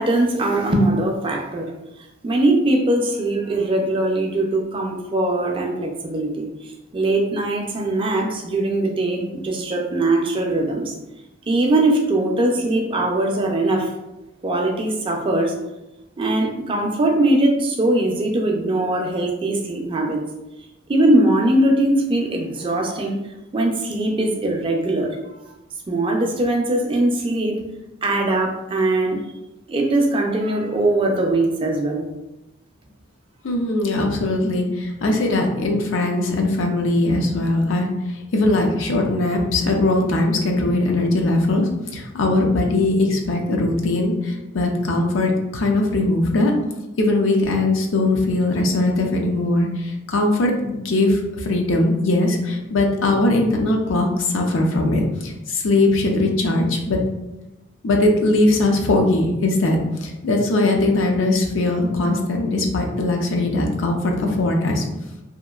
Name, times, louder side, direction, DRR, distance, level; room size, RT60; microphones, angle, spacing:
voice 1, 0.0-1.7 2.2-11.0 11.5-13.9 14.4-15.5 16.2-20.2 20.9-23.2 23.5-25.1 25.9-27.6 28.0-29.2 29.7-32.1, right 1 dB, 25° right, 1 dB, 0.4 m, -21 dB
voice 2, 33.4-37.9 38.3-46.5 47.0-57.0 57.8-64.8, left 2 dB, 75° left, 2 dB, 0.5 m, -20 dB
2.8 x 2.4 x 2.3 m, 0.96 s
head